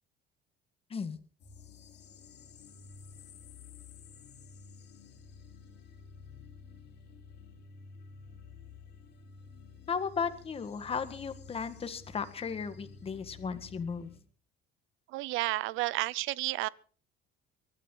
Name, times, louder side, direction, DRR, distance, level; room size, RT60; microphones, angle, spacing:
sound 1, 1.4-14.2, left 5 dB, 55° left, 3.3 m, -52 dB
voice 1, 9.9-14.1, left 6 dB, 30° left, 1.6 m, -35 dB
voice 2, 15.1-16.7, right 18 dB, 80° right, 0.7 m, -31 dB
23.5 x 13.0 x 3.8 m
cardioid pair, 135°, 20 cm